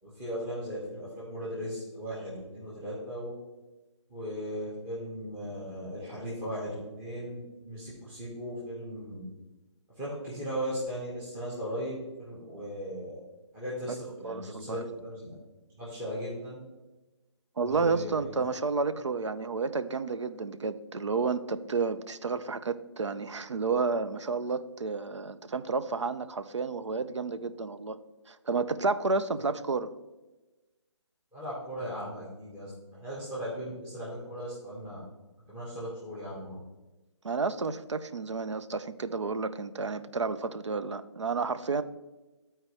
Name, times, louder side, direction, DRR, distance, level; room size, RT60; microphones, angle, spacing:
voice 1, 0.0-3.3 4.1-9.2 9.9-13.2 13.5-15.3 15.7-16.6 17.6-18.3 31.3-35.0 35.5-36.6, equal, 15° right, -8 dB, 1.7 m, -37 dB
voice 2, 14.2-14.8 17.6-28.0 28.3-29.9 37.2-41.8, right 4 dB, 80° right, 11 dB, 0.6 m, -31 dB
12.5 x 4.3 x 3.4 m, 1.1 s
figure-of-eight pair, 145°, 15 cm